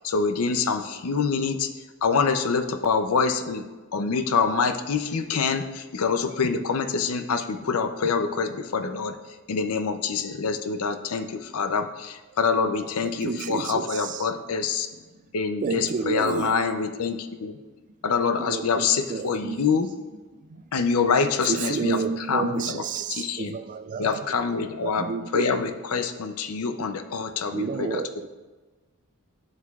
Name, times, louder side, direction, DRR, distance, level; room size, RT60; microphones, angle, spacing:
voice 1, 0.0-1.7 2.0-3.6 3.9-9.1 9.5-14.9 15.3-17.5 18.0-19.9 20.7-22.0 22.3-22.8 23.1-23.5 24.0-25.1 25.3-28.0, left 5 dB, 70° left, 9 dB, 0.6 m, -25 dB
voice 2, 13.0-14.3 15.6-16.8 18.4-19.8 21.4-24.4 24.8-25.7 25.9-26.0 27.5-28.3, right 5 dB, 35° right, 12 dB, 0.3 m, -30 dB
voice 3, 14.9-15.3 17.1-17.9 18.3-18.4 19.8-20.8 22.4-22.8 23.1-23.6 23.8-24.2, right 1 dB, 85° right, 2 dB, 0.9 m, -51 dB
11.0 x 6.6 x 2.4 m, 1.3 s
head